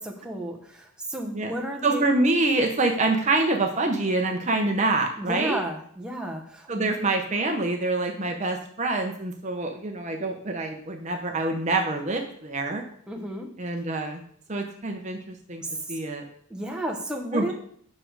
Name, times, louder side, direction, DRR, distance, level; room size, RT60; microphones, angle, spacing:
voice 1, 0.0-2.1 5.1-6.9 13.1-13.5 15.6-16.0 16.5-17.5, right 1 dB, 5° right, 1 dB, 1.0 m, -33 dB
voice 2, 1.8-5.6 6.7-12.8 13.6-14.2 14.5-15.2 15.5-15.6 15.9-16.2 17.3-17.5, right 2 dB, 35° right, 3 dB, 0.8 m, -26 dB
8.6 x 6.4 x 4.7 m, 0.64 s
head